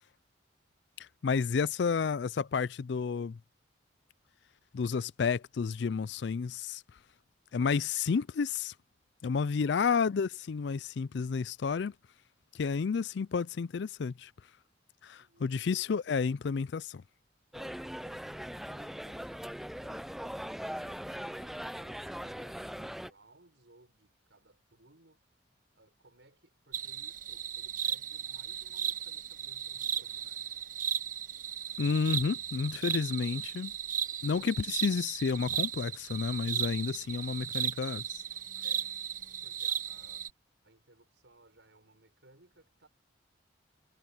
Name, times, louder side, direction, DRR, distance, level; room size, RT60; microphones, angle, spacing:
voice 1, 1.0-3.4 4.7-6.8 7.5-8.7 9.2-11.9 12.5-14.3 15.0-17.0 31.8-33.7 34.2-38.2, left 5 dB, 65° left, 0.4 m, -31 dB
voice 2, 15.2-15.5 17.5-25.2 25.7-30.5 32.8-33.6 34.3-34.8 38.6-38.9 39.4-40.3 40.6-42.9, right 2 dB, 75° right, 5.6 m, -62 dB
sound 1, 17.5-23.1, equal, ahead, 0.5 m, -40 dB
sound 2, 26.7-40.3, right 9 dB, 45° right, 0.8 m, -36 dB
head